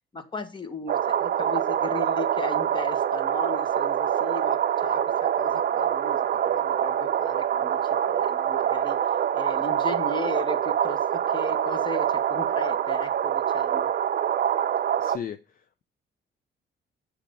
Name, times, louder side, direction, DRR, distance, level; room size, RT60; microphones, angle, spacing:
voice 1, 0.1-5.0 5.4-6.2 6.4-11.0 11.3-13.9, left 3 dB, 25° left, 9 dB, 1.3 m, -36 dB
sound 1, 0.9-15.2, right 9 dB, 50° right, 0.5 m, -25 dB
voice 2, 15.0-15.8, left 8 dB, 45° left, 11 dB, 0.5 m, -37 dB
7.3 x 5.1 x 5.1 m, 0.32 s
cardioid pair, 90°, 20 cm